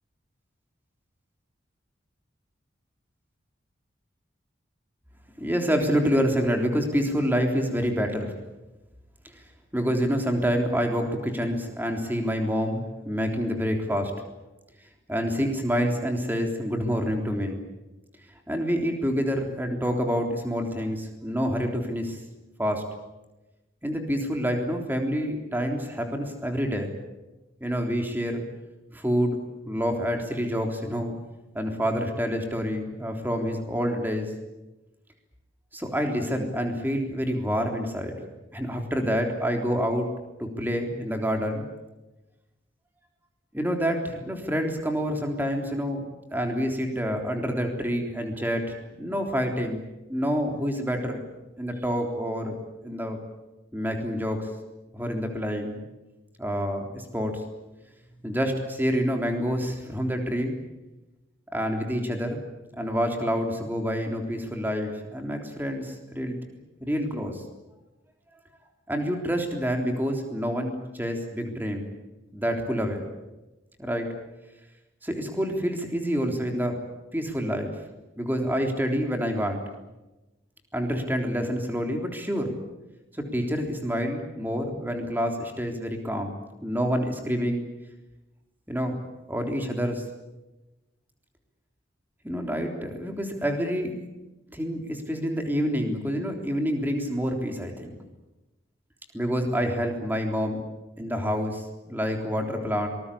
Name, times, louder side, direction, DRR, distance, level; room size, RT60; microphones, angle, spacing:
voice 1, 5.4-8.3 9.7-14.1 15.1-17.6 18.5-22.2 22.6-22.8 23.8-26.9 27.6-28.5 28.9-31.2 31.5-34.3 35.7-38.1 38.5-40.1 40.4-41.7 43.5-46.1 46.3-51.2 51.6-52.6 52.8-53.2 53.7-54.5 54.9-55.8 56.4-57.4 58.2-60.6 61.5-62.4 62.7-66.4 66.8-67.4 68.9-71.9 72.3-73.0 73.8-74.1 75.0-76.8 77.1-77.8 78.2-79.6 80.7-82.5 83.3-86.3 86.6-87.6 88.7-89.0 89.3-90.0 92.2-93.9 94.5-98.0 99.1-100.6 101.0-102.9, equal, 10° right, 3 dB, 3.5 m, -27 dB
25.5 x 20.0 x 8.6 m, 1.0 s
head